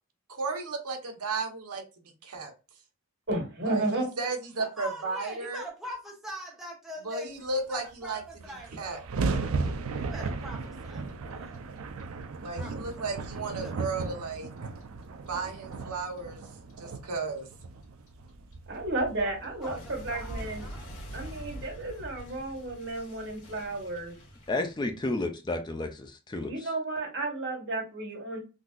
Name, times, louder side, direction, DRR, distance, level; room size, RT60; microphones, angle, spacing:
voice 1, 0.3-1.8 2.2-2.5 3.6-5.6 7.0-8.2 8.7-9.0 12.4-14.5 15.3-16.4 16.8-17.5, right 3 dB, 90° right, 3 dB, 0.9 m, -34 dB
voice 2, 3.3-4.1 18.7-20.7 21.1-24.1 26.4-28.4, right 2 dB, 55° right, -1 dB, 1.5 m, -32 dB
voice 3, 4.6-7.3 7.7-9.1 9.9-11.1 11.3-11.6 12.6-13.7 19.2-20.9, equal, ahead, -1 dB, 0.8 m, -43 dB
sound 1, 7.9-8.0 8.2-22.6, right 4 dB, 70° right, 0.5 m, -36 dB
Clock, 9.9-12.9 13.2-16.2 16.5-25.3, equal, 75° left, 1.8 m, -46 dB
voice 4, 24.5-26.5, left 2 dB, 20° left, 6 dB, 0.4 m, -31 dB
3.8 x 2.7 x 2.4 m, 0.30 s
head